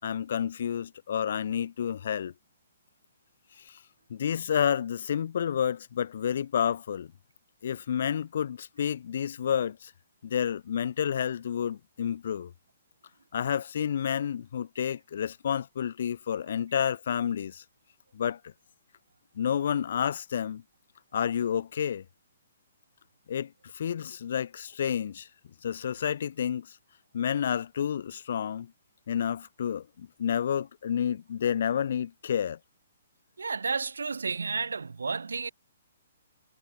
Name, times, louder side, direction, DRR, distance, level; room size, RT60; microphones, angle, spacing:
voice 1, 0.0-2.3 3.6-3.8 4.1-7.1 7.6-9.9 10.2-12.5 13.3-17.6 18.1-18.5 19.4-20.6 21.1-22.0 23.3-25.3 25.6-26.8 27.1-28.7 29.1-32.6, left 8 dB, 60° left, 5.5 m, -30 dB
voice 2, 33.4-35.5, right 4 dB, 75° right, 3.9 m, -31 dB
figure-of-eight pair, 125°, 0 cm